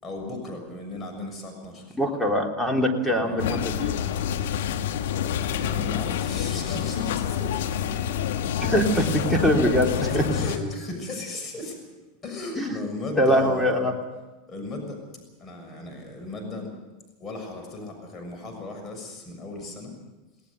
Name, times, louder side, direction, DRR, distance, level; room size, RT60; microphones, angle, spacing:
voice 1, 0.0-2.0 3.1-3.4 5.5-7.9 8.9-9.1 10.1-11.8 12.2-13.7 14.5-16.7 17.2-19.9, left 2 dB, 30° left, 3 dB, 6.6 m, -36 dB
voice 2, 2.0-4.0 8.6-9.9 10.1-10.3 12.6-12.8 13.2-13.9, equal, 5° left, 2 dB, 3.4 m, -23 dB
sound 1, 3.4-10.6, left 9 dB, 70° left, 1.3 m, -27 dB
19.0 x 19.0 x 8.3 m, 1.2 s
hypercardioid pair, 95°, 0 cm